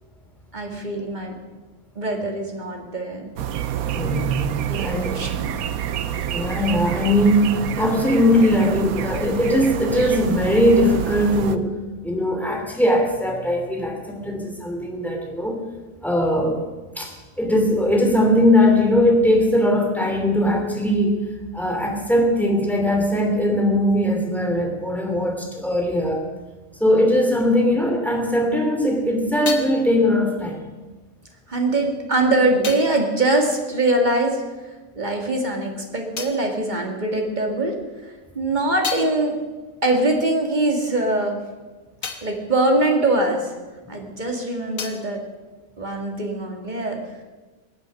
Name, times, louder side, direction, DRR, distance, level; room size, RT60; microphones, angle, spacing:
voice 1, 0.5-1.3 2.0-3.4 4.6-5.5 6.2-6.3 27.3-27.6 31.5-34.4 35.0-37.7 38.4-39.3 39.8-41.4 42.2-43.5 43.9-45.2 45.8-47.0, right 2 dB, 30° right, 1 dB, 2.3 m, -22 dB
sound 1, 3.4-11.6, right 10 dB, 75° right, 1.2 m, -28 dB
voice 2, 3.9-5.2 6.3-11.7 12.0-15.6 16.0-16.6 17.0-21.3 21.5-26.3 26.8-30.6, left 1 dB, ahead, 0 dB, 2.8 m, -20 dB
sound 2, 28.8-34.6 34.9-37.6 38.0-44.0 44.3-46.3, left 6 dB, 70° left, 1.7 m, -39 dB
22.0 x 8.3 x 6.3 m, 1.2 s
omnidirectional pair, 1.5 m